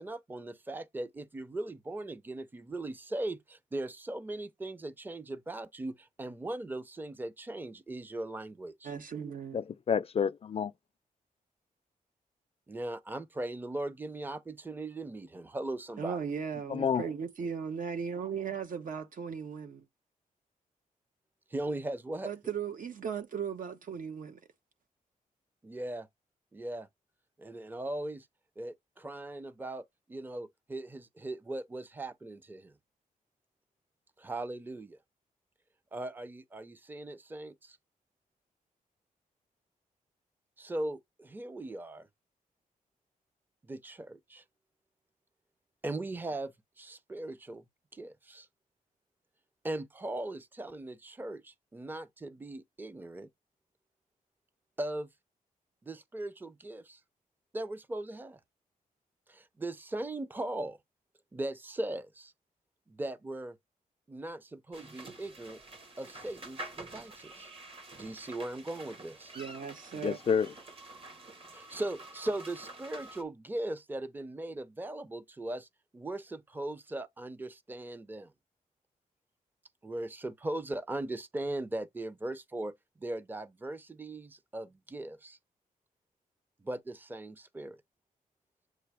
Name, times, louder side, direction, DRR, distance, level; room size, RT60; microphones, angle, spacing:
voice 1, 0.0-8.9 12.7-16.2 21.5-22.3 25.6-26.1 26.5-26.9 27.4-28.3 28.6-29.8 30.1-32.7 34.2-35.0 35.9-37.8 40.6-42.1 43.7-44.4 45.8-47.6 47.9-48.5 49.6-53.3 54.8-55.1 55.8-57.0 57.5-58.4 59.3-60.8 61.3-62.3 62.9-63.6 64.1-65.6 66.0-67.5 68.0-69.3 71.5-78.3 79.8-85.4 86.6-87.8, right 1 dB, 15° right, 0.6 m, -39 dB
voice 2, 8.8-9.6 16.0-19.8 22.2-24.4 69.3-70.2, right 7 dB, 65° right, 1.1 m, -37 dB
voice 3, 9.5-10.7 16.7-17.0 70.0-70.5, left 7 dB, 40° left, 0.4 m, -29 dB
sound 1, 64.7-73.2, right 2 dB, 40° right, 1.4 m, -48 dB
7.6 x 2.7 x 4.8 m
wide cardioid pair, 115°, 15 cm